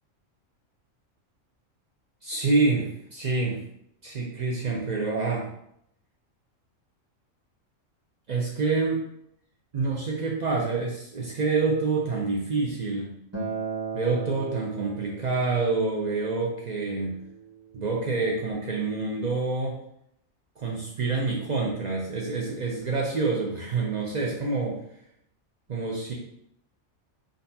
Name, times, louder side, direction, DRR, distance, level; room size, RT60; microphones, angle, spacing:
voice 1, 2.2-3.6 4.0-5.5 8.3-9.0 9.7-13.1 13.9-17.2 17.7-19.8 20.6-24.8 25.7-26.1, right 3 dB, 65° right, -3 dB, 0.4 m, -27 dB
Acoustic guitar, 13.3-18.5, right 5 dB, 15° right, 0.7 m, -38 dB
3.8 x 2.3 x 2.7 m, 0.75 s
omnidirectional pair, 1.3 m